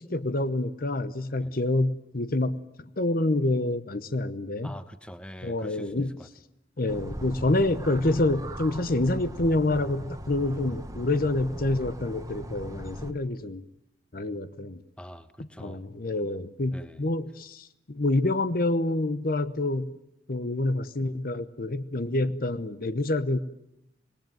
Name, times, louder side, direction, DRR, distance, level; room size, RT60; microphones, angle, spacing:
voice 1, 0.0-2.6 3.0-4.7 5.4-6.2 6.8-13.6 14.1-14.8 15.4-19.9 20.3-23.4, left 2 dB, 55° left, 13 dB, 0.9 m, -27 dB
voice 2, 4.6-5.9 6.2-6.3 15.0-15.8 16.7-17.0, equal, 5° left, 11 dB, 1.2 m, -44 dB
sound 1, 6.9-13.1, right 1 dB, 20° right, 1.4 m, -39 dB
26.0 x 20.0 x 9.2 m, 0.84 s
head